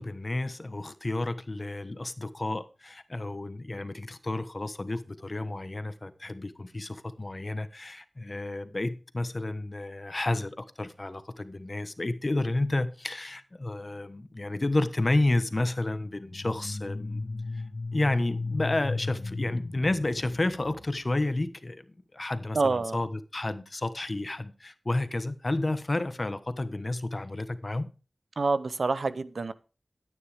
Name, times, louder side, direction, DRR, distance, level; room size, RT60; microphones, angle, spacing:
voice 1, 0.0-17.2 17.5-17.6 17.9-21.8 22.1-27.9, left 2 dB, 40° left, 1.2 m, -31 dB
sound 1, 16.1-20.9, left 3 dB, 60° left, 1.7 m, -35 dB
voice 2, 22.5-23.0 28.4-29.5, right 3 dB, 85° right, 0.7 m, -27 dB
13.0 x 9.5 x 3.5 m
wide cardioid pair, 65°, 0 cm